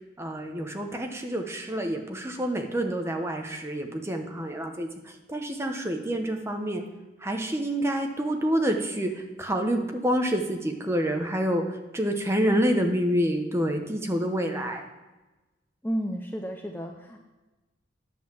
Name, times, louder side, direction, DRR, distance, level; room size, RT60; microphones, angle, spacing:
voice 1, 0.2-6.8 7.2-14.9, equal, 15° right, 4 dB, 1.0 m, -28 dB
voice 2, 15.8-17.2, equal, 10° left, 3 dB, 0.6 m, -32 dB
10.0 x 5.7 x 7.4 m, 1.1 s
head